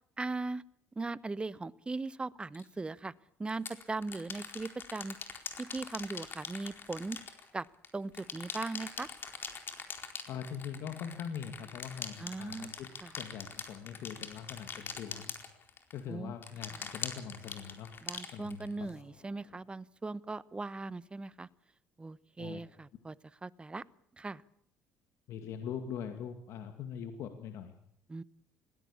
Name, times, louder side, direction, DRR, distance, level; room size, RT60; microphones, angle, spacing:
voice 1, 0.2-0.6 1.0-3.1 3.4-5.1 5.6-7.2 7.5-7.6 7.9-9.1 12.2-12.7 13.0-13.1 16.1-16.3 18.0-21.5 22.0-23.1 23.4-23.8 24.2-24.4 28.1-28.2, right 3 dB, 20° right, 18 dB, 0.9 m, -39 dB
sound 1, 2.5-2.6 3.5-7.9 8.1-16.0 16.4-18.9, left 6 dB, 40° left, 4.5 m, -42 dB
voice 2, 10.3-12.9 13.2-15.4 15.9-19.5 22.4-22.6 25.3-27.7, left 8 dB, 65° left, 6 dB, 2.2 m, -42 dB
21.0 x 17.0 x 8.6 m, 0.70 s
supercardioid pair, 80°, 5 cm